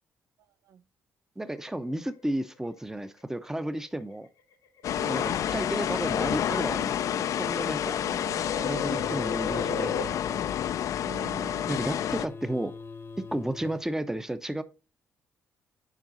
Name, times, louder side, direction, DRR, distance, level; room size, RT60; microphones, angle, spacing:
sound 1, 1.4-2.3 3.5-3.9 4.8-10.0, left 5 dB, 85° left, 0.8 m, -37 dB
voice 1, 1.4-4.3 5.1-8.0 8.6-10.6 11.7-12.7 13.3-14.6, right 1 dB, 10° right, 0.7 m, -33 dB
sound 2, 4.8-12.3, left 10 dB, 65° left, 0.3 m, -29 dB
voice 2, 4.9-5.5 8.0-8.5 11.0-11.9, right 8 dB, 75° right, 0.4 m, -44 dB
sound 3, 8.9-13.9, left 4 dB, 40° left, 0.8 m, -42 dB
7.4 x 4.8 x 3.9 m
cardioid pair, 75°, 6 cm